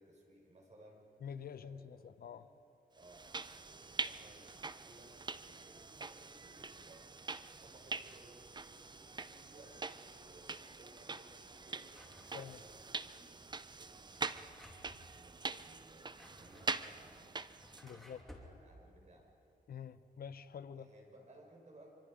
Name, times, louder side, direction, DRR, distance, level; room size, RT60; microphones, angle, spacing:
voice 1, 0.0-1.1 1.5-2.6 2.9-7.2 7.6-11.9 12.3-14.7 15.1-17.4 17.8-19.3 20.7-21.9, right 1 dB, 45° right, 1 dB, 5.4 m, -61 dB
voice 2, 1.2-2.4 12.3-12.6 17.8-18.2 19.7-20.9, left 7 dB, 65° left, 13 dB, 0.7 m, -47 dB
sound 1, 3.0-18.0, right 4 dB, 25° right, 0.6 m, -44 dB
sound 2, 8.8-12.8, left 3 dB, 50° left, 6.4 m, -68 dB
Drawer open or close, 11.9-12.9 13.9-15.1 15.9-18.5, left 1 dB, ahead, 2.9 m, -58 dB
25.0 x 25.0 x 5.0 m, 2.9 s
cardioid pair, 95°, 16 cm